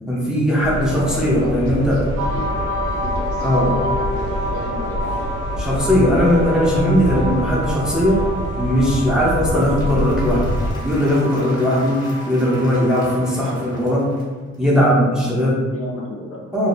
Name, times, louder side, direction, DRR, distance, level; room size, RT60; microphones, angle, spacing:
voice 1, 0.0-2.0 3.4-3.7 5.6-8.2 8.6-14.1 14.6-15.6 16.5-16.7, equal, ahead, -6 dB, 0.6 m, -18 dB
sound 1, 0.6-10.7, equal, 50° right, 0.9 m, -26 dB
voice 2, 0.8-2.5 3.0-5.3 15.7-16.4, left 1 dB, 50° left, -2 dB, 0.6 m, -33 dB
sound 2, 2.2-13.8, equal, 70° right, 0.6 m, -29 dB
Applause / Crowd, 9.2-14.5, equal, 15° left, 1.1 m, -43 dB
2.6 x 2.0 x 2.4 m, 1.4 s
cardioid pair, 90°, 30 cm